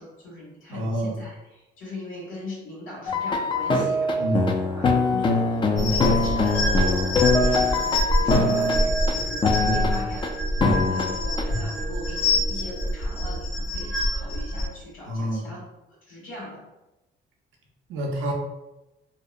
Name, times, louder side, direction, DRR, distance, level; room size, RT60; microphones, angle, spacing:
voice 1, 0.0-10.3 10.9-15.6 16.1-16.6, left 2 dB, 80° left, -6 dB, 1.3 m, -39 dB
voice 2, 0.7-1.2 4.2-4.5 5.8-6.1 9.6-9.9 10.6-10.9 15.1-15.5 17.9-18.3, right 1 dB, 85° right, -1 dB, 0.5 m, -28 dB
sound 1, 3.1-9.1 9.4-10.3 10.6-11.4, left 3 dB, 25° left, 0.3 m, -23 dB
sound 2, 3.4-13.4, right 3 dB, 35° right, 0.6 m, -41 dB
sound 3, 5.8-14.7, equal, 55° left, 0.9 m, -26 dB
2.7 x 2.1 x 2.4 m, 1.0 s
cardioid pair, 90°, 20 cm